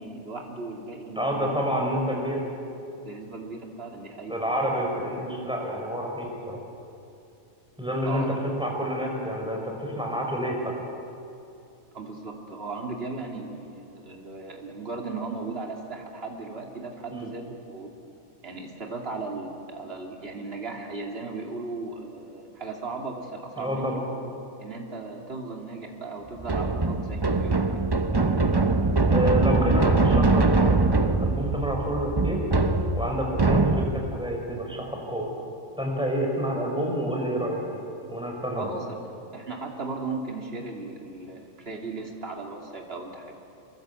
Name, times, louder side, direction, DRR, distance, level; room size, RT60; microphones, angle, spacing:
voice 1, 0.0-1.6 3.0-4.4 8.0-8.4 11.9-17.5 17.7-17.9 18.4-24.0 24.6-27.8 38.6-39.0 39.3-43.3, right 3 dB, 45° right, 1 dB, 3.0 m, -36 dB
voice 2, 1.2-2.4 4.3-6.6 7.8-8.2 8.6-10.5 17.1-17.3 23.6-24.0 28.2-28.4 29.1-32.4 32.9-35.3 35.8-37.8 38.1-38.7, equal, 5° right, 0 dB, 5.5 m, -28 dB
sound 1, 26.4-34.2, right 3 dB, 20° right, 0.8 m, -23 dB
28.5 x 22.0 x 8.3 m, 2.8 s
omnidirectional pair, 1.4 m